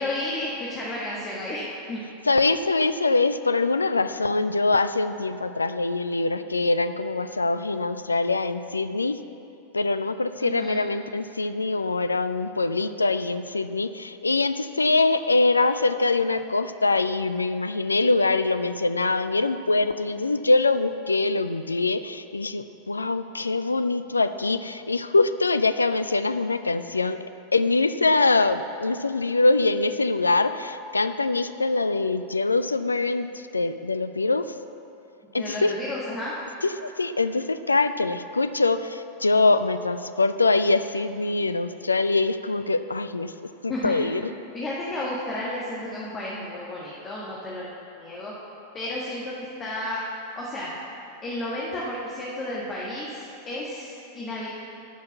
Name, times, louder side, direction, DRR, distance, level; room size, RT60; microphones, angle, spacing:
voice 1, 0.0-2.0 10.4-10.9 35.4-36.3 43.7-43.9 44.5-47.7 48.0-48.3 48.7-50.0 50.4-50.7 51.2-54.5, left 1 dB, 25° left, -6 dB, 1.7 m, -32 dB
voice 2, 2.3-9.2 9.7-27.2 27.5-34.5 35.3-35.7 36.6-43.3 43.6-44.3, left 3 dB, 80° left, 11 dB, 0.4 m, -23 dB
11.0 x 5.7 x 7.1 m, 2.8 s
figure-of-eight pair, 90°, 0 cm